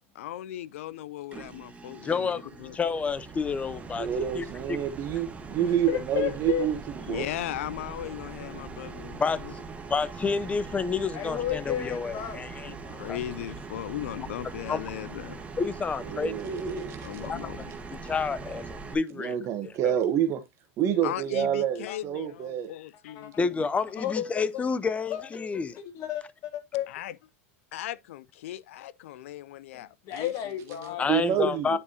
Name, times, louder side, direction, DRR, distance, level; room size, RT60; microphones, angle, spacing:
voice 1, 0.2-2.8 7.1-9.5 12.6-15.4 17.0-17.6 21.0-23.7 26.9-27.2 27.7-30.3 30.7-31.2, left 13 dB, 75° left, 0.5 m, -38 dB
sound 1, 1.3-18.9, right 4 dB, 20° right, 1.3 m, -41 dB
voice 2, 2.0-4.1 4.3-4.8 9.2-9.6 9.9-13.2 14.7-14.8 15.6-16.3 17.3-17.4 17.9-19.4 19.8-19.9 23.4-25.8 31.0-31.8, left 5 dB, 20° left, 0.6 m, -29 dB
voice 3, 3.9-7.3 16.0-17.2 19.2-20.4 20.8-22.7 31.1-31.8, right 9 dB, 45° right, 1.0 m, -28 dB
voice 4, 5.6-6.7 11.1-12.4 21.9-22.0 23.1-23.3 24.0-24.6 25.1-25.3 25.8-26.9 30.0-31.0, left 11 dB, 45° left, 1.8 m, -32 dB
9.7 x 4.8 x 2.7 m
hypercardioid pair, 115°, 7 cm